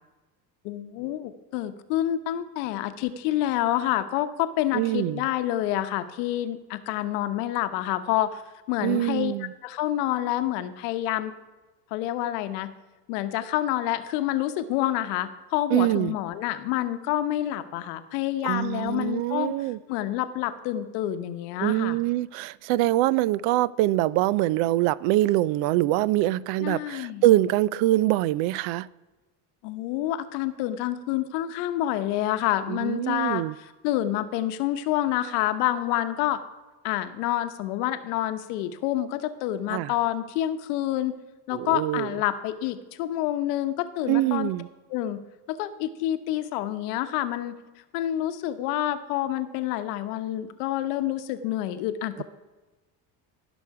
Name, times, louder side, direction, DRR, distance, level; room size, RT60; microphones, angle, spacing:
voice 1, 0.6-8.4 8.7-9.3 9.6-11.3 11.9-12.7 13.1-19.5 19.9-22.0 26.6-27.2 29.6-33.4 33.8-36.4 36.8-41.1 41.5-44.5 44.9-45.2 45.5-47.5 47.9-52.2, left 13 dB, 90° left, 1.0 m, -28 dB
voice 2, 4.7-5.2 8.8-9.5 15.7-16.2 18.4-19.8 21.6-28.9 32.7-33.5 39.7-39.9 41.5-42.1 44.1-44.7, right 16 dB, 70° right, 0.5 m, -24 dB
15.0 x 6.3 x 4.8 m
cardioid pair, 115°, 46 cm